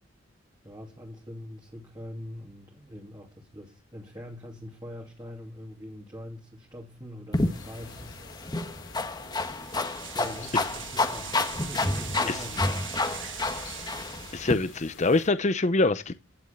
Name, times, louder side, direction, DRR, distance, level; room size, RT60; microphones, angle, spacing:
voice 1, 0.6-8.6 9.8-13.4, left 1 dB, 20° right, 2.8 m, -44 dB
sound 1, 7.3-15.3, left 5 dB, 85° left, 4.0 m, -48 dB
sound 2, 7.3-14.5, left 2 dB, 20° left, 1.5 m, -30 dB
sound 3, 9.3-14.9, right 10 dB, 75° right, 1.4 m, -42 dB
voice 2, 14.3-16.1, left 2 dB, 40° left, 0.7 m, -24 dB
16.0 x 7.1 x 8.7 m
head